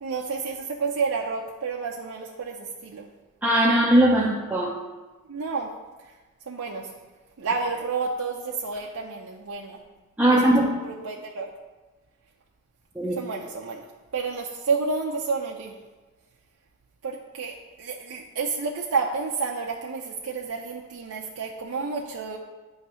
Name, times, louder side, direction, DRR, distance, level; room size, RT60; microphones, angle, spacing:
voice 1, 0.0-3.1 5.3-5.7 6.5-6.9 7.4-9.8 10.3-11.5 13.1-13.9 14.1-15.7 17.0-22.4, right 4 dB, 75° right, -1 dB, 0.6 m, -30 dB
voice 2, 3.4-4.7 10.2-10.7 13.0-13.2, right 1 dB, 5° right, -4 dB, 0.5 m, -19 dB
9.3 x 3.2 x 5.6 m, 1.2 s
head